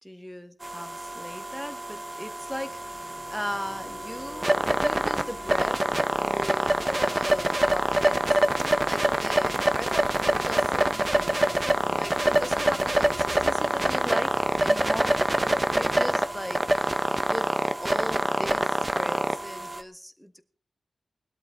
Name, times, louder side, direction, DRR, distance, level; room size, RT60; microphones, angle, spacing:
voice 1, 0.0-5.9 6.2-17.0 17.3-17.5 17.8-20.4, equal, ahead, 9 dB, 1.4 m, -38 dB
sound 1, 0.6-19.8, right 1 dB, 20° right, 0.9 m, -25 dB
sound 2, 2.3-17.7, left 4 dB, 65° left, 1.2 m, -46 dB
20.0 x 12.5 x 3.6 m, 0.39 s
wide cardioid pair, 125°, 0 cm